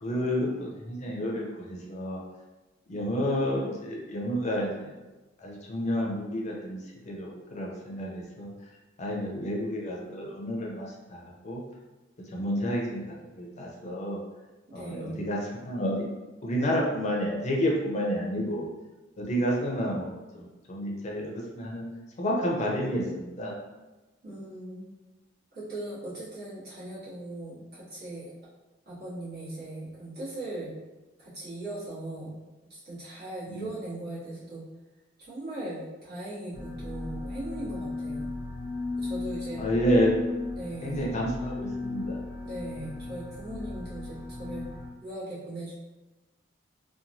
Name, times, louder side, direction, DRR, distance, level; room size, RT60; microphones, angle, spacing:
voice 1, 0.0-2.2 2.9-4.9 5.4-8.5 9.0-11.6 12.3-14.2 14.7-15.4 15.6-16.0 16.4-18.6 19.2-21.8 22.2-23.5 33.5-33.7 39.6-40.3 40.8-42.2, equal, 35° left, -2 dB, 0.5 m, -30 dB
voice 2, 14.7-15.3 24.2-24.9 25.5-28.3 28.9-30.7 31.2-32.4 32.7-34.6 35.2-38.3 39.0-39.6 40.6-41.1 42.4-44.7 45.0-45.7, right 1 dB, 55° right, -10 dB, 1.2 m, -39 dB
sound 1, 36.5-44.9, left 2 dB, 15° right, 0.8 m, -36 dB
2.9 x 2.2 x 2.6 m, 1.1 s
head